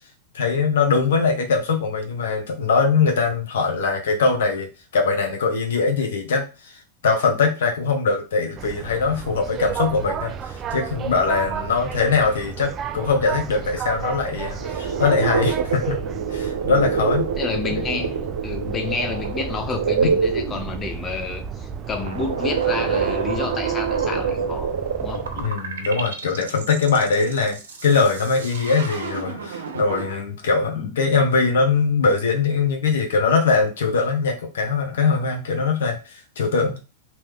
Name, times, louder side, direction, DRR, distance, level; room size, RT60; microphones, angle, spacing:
voice 1, 0.3-16.0 16.3-17.3 20.0-20.1 25.3-36.8, left 4 dB, 80° left, 0.9 m, -22 dB
sound 1, 8.6-25.5, right 7 dB, 35° right, 0.3 m, -33 dB
sound 2, 14.6-21.2 21.8-30.1, right 6 dB, 85° right, 0.6 m, -26 dB
voice 2, 17.4-18.2 18.4-25.3 30.8-30.9, left 4 dB, 25° left, 0.6 m, -29 dB
3.0 x 2.1 x 3.3 m
hypercardioid pair, 110°, 0 cm